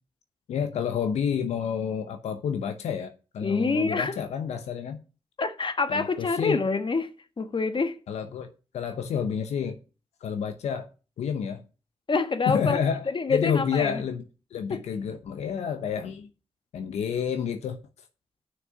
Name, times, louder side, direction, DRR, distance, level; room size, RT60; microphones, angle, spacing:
voice 1, 0.5-5.0 5.9-6.6 8.1-9.8 10.2-10.9 11.2-11.6 12.5-14.2 14.5-16.3 16.7-17.8, left 7 dB, 90° left, 0.8 m, -29 dB
voice 2, 3.4-4.2 5.4-7.1 7.4-8.0 12.1-12.8 13.1-14.0 14.7-14.8, left 4 dB, 50° left, 1.3 m, -26 dB
6.5 x 6.1 x 6.9 m
supercardioid pair, 45°, 11 cm